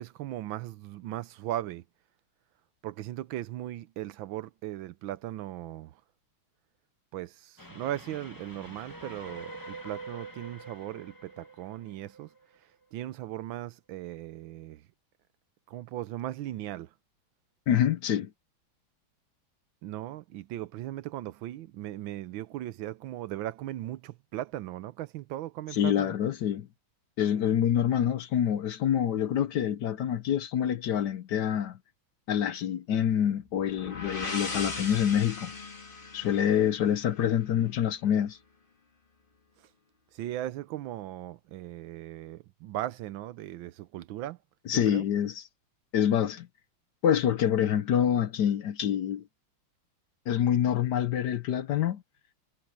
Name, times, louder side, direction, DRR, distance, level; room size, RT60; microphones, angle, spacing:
voice 1, 0.0-1.8 2.8-6.0 7.1-12.3 12.9-14.8 15.7-16.9 19.8-26.1 40.1-44.4 44.7-45.1, right 13 dB, 75° right, 1.4 m, -38 dB
Train, 7.6-12.8, right 2 dB, 10° left, 1.7 m, -46 dB
voice 2, 17.7-18.3 25.7-26.7 27.2-31.8 32.3-35.5 36.1-38.4 44.7-45.4 45.9-46.5 47.0-49.2 50.3-52.0, left 9 dB, 65° left, 1.2 m, -26 dB
sound 1, 33.5-37.3, left 3 dB, 25° left, 2.1 m, -38 dB
omnidirectional pair, 2.2 m